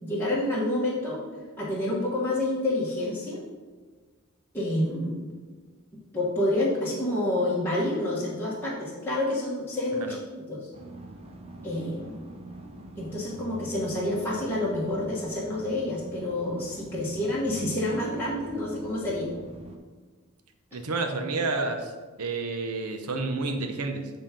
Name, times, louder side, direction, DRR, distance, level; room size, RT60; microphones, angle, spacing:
voice 1, 0.0-1.2 1.6-3.4 4.5-5.2 6.1-10.2 10.5-10.6 11.6-12.2 13.0-19.3, left 1 dB, 10° left, -9 dB, 1.2 m, -28 dB
sound 1, 10.7-19.8, right 1 dB, 25° right, 0.7 m, -44 dB
voice 2, 20.7-21.9 22.2-24.1, right 3 dB, 85° right, 6 dB, 0.8 m, -30 dB
7.3 x 3.5 x 5.8 m, 1.4 s
head